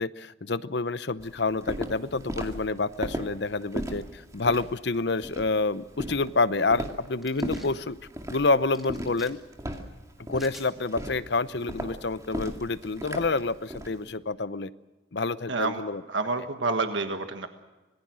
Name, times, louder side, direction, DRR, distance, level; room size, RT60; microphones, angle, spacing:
voice 1, 0.0-8.0 8.3-9.4 10.3-14.7 15.1-16.0, left 3 dB, 60° left, 15 dB, 0.8 m, -28 dB
Walk footsteps, 1.2-14.0, right 1 dB, 15° right, 2.2 m, -37 dB
sound 1, 7.2-7.7 8.7-9.3 10.3-10.7, equal, ahead, 2.4 m, -48 dB
voice 2, 15.5-15.8 16.1-17.5, right 3 dB, 75° right, 7 dB, 1.5 m, -28 dB
25.5 x 20.0 x 6.3 m, 1.2 s
head